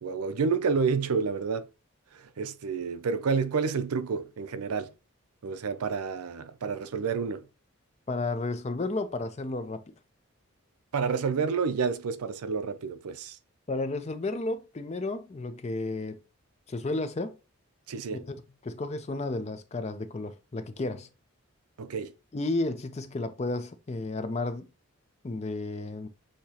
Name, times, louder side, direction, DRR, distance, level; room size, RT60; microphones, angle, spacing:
voice 1, 0.0-1.7 2.1-4.9 5.4-7.5 10.9-13.4 17.9-18.2 21.8-22.1, right 5 dB, 85° right, 0.5 m, -29 dB
voice 2, 8.1-9.8 13.7-16.2 16.7-17.3 18.2-18.4 18.6-21.1 22.3-24.7 25.2-26.1, left 2 dB, 30° left, 0.4 m, -32 dB
6.5 x 2.8 x 2.8 m
head